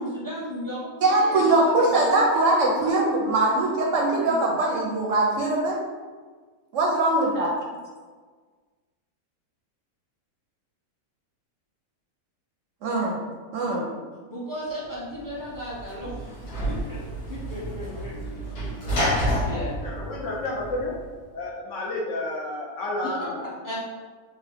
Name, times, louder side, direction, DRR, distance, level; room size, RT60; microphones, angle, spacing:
voice 1, 0.0-2.1 4.3-4.4 14.3-18.4 19.4-19.7 23.4-23.8, equal, 20° left, -7 dB, 0.6 m, -36 dB
voice 2, 1.0-5.8 6.7-7.7 12.8-13.2 13.5-13.9, right 2 dB, 70° right, -2 dB, 0.8 m, -22 dB
Sliding door / Slam, 15.2-21.0, equal, 85° left, 1.7 m, -29 dB
voice 3, 19.8-20.9 21.3-23.8, left 2 dB, 65° left, -3 dB, 0.9 m, -31 dB
3.9 x 2.1 x 3.4 m, 1.5 s
omnidirectional pair, 1.6 m